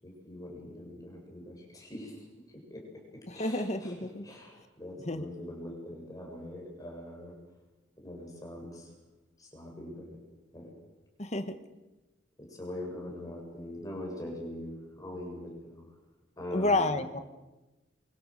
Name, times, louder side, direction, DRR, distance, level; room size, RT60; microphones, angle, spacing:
voice 1, 0.0-2.8 3.1-3.9 4.2-7.4 8.0-8.9 9.4-10.2 10.5-10.7 12.4-15.9 16.4-17.0, left 1 dB, 20° left, 0 dB, 7.7 m, -43 dB
voice 2, 3.3-4.2 5.1-5.3 11.2-11.6 16.5-17.2, left 2 dB, 35° left, 9 dB, 1.5 m, -30 dB
27.5 x 25.0 x 6.7 m, 1.1 s
head